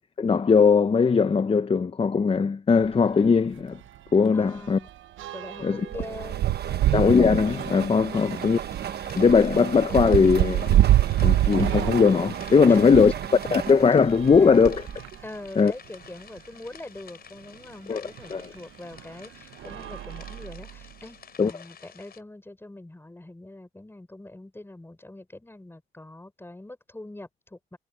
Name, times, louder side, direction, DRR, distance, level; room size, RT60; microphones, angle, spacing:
voice 1, 0.2-3.8 4.1-4.8 5.6-5.9 6.9-8.6 9.1-10.8 11.2-13.1 13.5-14.8 15.6-15.7 17.9-18.5 21.4-21.5, left 5 dB, 30° left, 0.8 m, -20 dB
sound 1, 2.8-3.0 3.4-3.5 3.8-13.3 14.0-15.4 16.0-16.1 16.4-16.5 18.2-18.3 18.9-19.2 19.6-20.9, right 13 dB, 80° right, 1.2 m, -27 dB
voice 2, 4.3-4.9 5.3-6.9 8.1-8.6 12.7-13.6 14.3-14.7 15.2-27.8, left 1 dB, 10° left, 4.8 m, -43 dB
sound 2, 5.9-15.2, right 9 dB, 55° right, 1.3 m, -36 dB
sound 3, 8.3-22.2, left 7 dB, 50° left, 4.6 m, -51 dB
cardioid pair, 90°, 20 cm